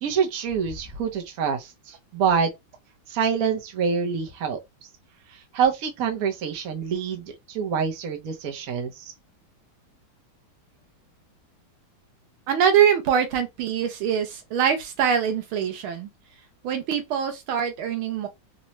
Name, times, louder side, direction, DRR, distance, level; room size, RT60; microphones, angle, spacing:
voice 1, 0.0-2.5 3.1-4.6 5.5-9.1, right 6 dB, 55° right, 1.1 m, -26 dB
voice 2, 12.5-16.1 16.6-18.3, right 8 dB, 80° right, 1.7 m, -23 dB
4.0 x 2.3 x 3.0 m
omnidirectional pair, 2.3 m